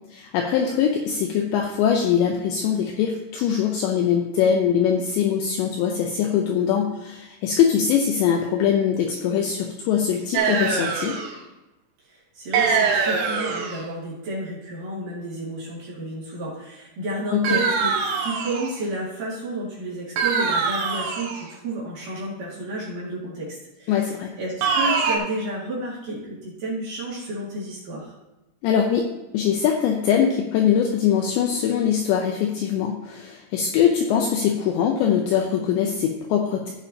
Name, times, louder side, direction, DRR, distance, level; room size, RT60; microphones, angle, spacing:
voice 1, 0.1-11.2 17.3-17.6 23.9-24.3 28.6-29.1 29.3-36.7, left 8 dB, 80° left, 2 dB, 2.6 m, -22 dB
sound 1, 10.3-11.4 12.5-13.8 17.4-18.8 20.2-21.4 24.6-25.2, right 5 dB, 70° right, 2.8 m, -23 dB
voice 2, 12.1-17.9 18.2-23.9 24.4-28.1, right 1 dB, 50° right, -7 dB, 3.3 m, -31 dB
15.0 x 7.1 x 2.8 m, 1.0 s
omnidirectional pair, 5.8 m